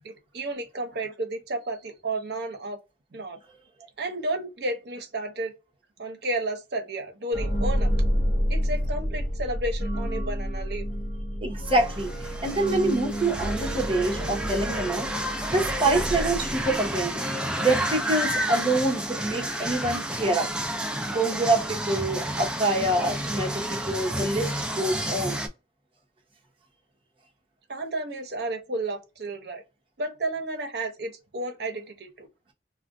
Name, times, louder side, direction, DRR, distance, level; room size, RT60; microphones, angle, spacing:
voice 1, 0.0-2.8 3.1-3.4 4.0-5.5 6.0-7.9 8.5-10.9 27.7-29.6 30.0-32.3, right 2 dB, 65° right, 0.8 m, -32 dB
sound 1, 7.3-17.0, equal, 35° left, 0.8 m, -29 dB
voice 2, 11.4-12.1 12.4-15.1 15.5-17.2 17.6-20.5 21.1-25.4, right 2 dB, 30° right, 0.9 m, -26 dB
sound 2, 11.7-25.5, right 1 dB, 5° right, 0.4 m, -31 dB
2.4 x 2.2 x 3.6 m
head